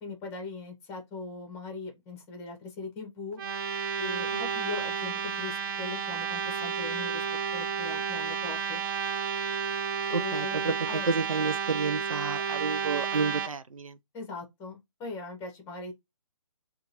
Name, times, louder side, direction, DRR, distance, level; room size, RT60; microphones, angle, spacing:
voice 1, 0.0-3.4 4.0-7.2 7.5-8.8 10.1-11.1 14.1-15.9, left 4 dB, 15° left, 0.9 m, -40 dB
sound 1, 3.3-13.5, right 6 dB, 40° right, 0.6 m, -31 dB
voice 2, 10.1-10.7 11.1-14.0, right 4 dB, 90° right, 0.5 m, -30 dB
2.8 x 2.5 x 4.1 m
hypercardioid pair, 155°, 17 cm